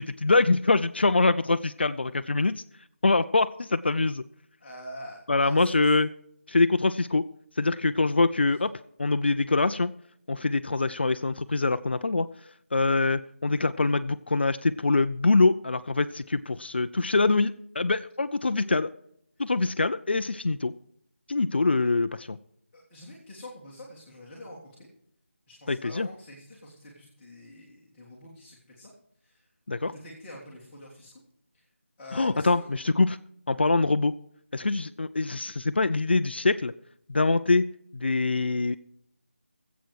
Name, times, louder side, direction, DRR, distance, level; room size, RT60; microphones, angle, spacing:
voice 1, 0.0-2.6 3.0-4.2 5.3-6.1 6.5-7.3 7.6-8.7 9.0-9.9 10.3-12.3 12.7-18.9 19.4-20.7 21.3-22.4 25.7-26.1 29.7-29.9 32.1-33.2 33.5-34.1 34.5-36.7 37.1-37.6 37.9-38.8, left 3 dB, 55° left, 12 dB, 0.5 m, -24 dB
voice 2, 4.6-5.9 22.7-24.9 25.5-28.9 29.2-29.5 29.9-31.2 31.5-31.7 32.0-32.7, left 1 dB, 10° left, -9 dB, 1.8 m, -46 dB
19.0 x 8.1 x 4.8 m, 0.70 s
figure-of-eight pair, 175°, 7 cm